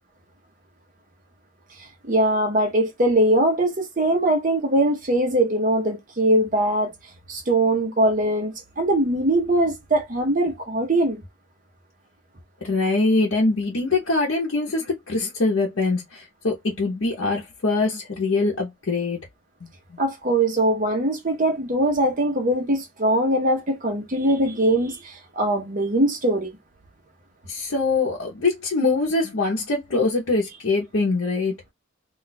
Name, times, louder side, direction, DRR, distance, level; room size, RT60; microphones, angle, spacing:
voice 1, 2.0-6.9 7.3-11.2 20.0-26.5, right 1 dB, 40° right, 0.8 m, -21 dB
voice 2, 12.6-19.2 19.9-20.0 27.5-31.6, left 3 dB, 75° left, 0.8 m, -23 dB
2.4 x 2.3 x 3.9 m
head